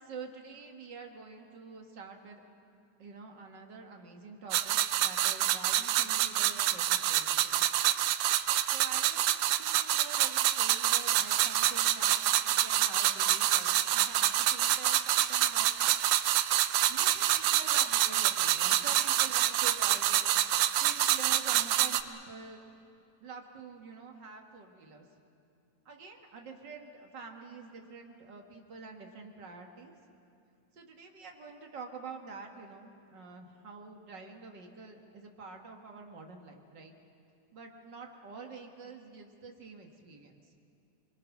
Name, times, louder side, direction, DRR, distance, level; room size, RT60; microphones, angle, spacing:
voice 1, 0.0-2.5 3.0-7.7 8.7-15.7 16.9-20.3 20.8-22.7 23.2-25.0 25.9-29.9 30.7-36.9 37.5-40.4, right 4 dB, 40° right, 2 dB, 1.8 m, -47 dB
sound 1, 4.5-22.0, right 13 dB, 75° right, 1.7 m, -27 dB
30.0 x 22.0 x 6.0 m, 2.5 s
omnidirectional pair, 3.7 m